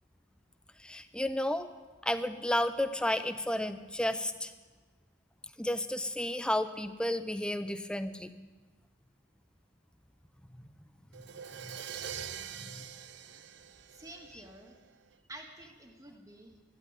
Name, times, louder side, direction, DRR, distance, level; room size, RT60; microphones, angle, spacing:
voice 1, 0.8-1.7 2.0-4.5 5.6-8.3 10.6-10.7 11.6-11.8 12.5-12.8, left 1 dB, 5° left, 10 dB, 0.6 m, -32 dB
Crash cymbal, 11.1-14.9, right 8 dB, 60° right, 0.6 m, -44 dB
voice 2, 13.9-14.8 15.3-16.5, right 1 dB, 20° right, 2 dB, 1.8 m, -49 dB
12.0 x 11.5 x 9.1 m, 1.3 s
head